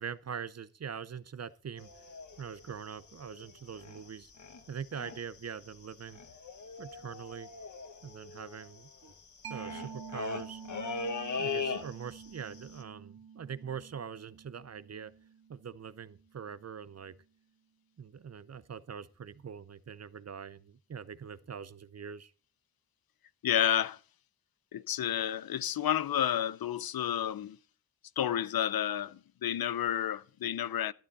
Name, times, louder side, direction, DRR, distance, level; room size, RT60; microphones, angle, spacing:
voice 1, 0.0-2.1 2.4-4.3 4.7-6.2 6.8-7.5 8.0-9.1 9.5-10.6 11.4-15.1 15.5-17.2 18.0-22.3, right 7 dB, 45° right, 0.6 m, -43 dB
sound 1, 1.8-4.1 4.4-4.6 4.9-5.4 5.7-5.8 5.9-12.3 12.5-12.8, left 4 dB, 55° left, 1.4 m, -39 dB
Mallet percussion, 9.4-16.7, right 7 dB, 85° right, 2.1 m, -49 dB
voice 2, 23.4-24.0 24.7-27.6 28.2-30.9, left 10 dB, 80° left, 0.6 m, -30 dB
12.0 x 11.5 x 4.1 m
wide cardioid pair, 130°, 35 cm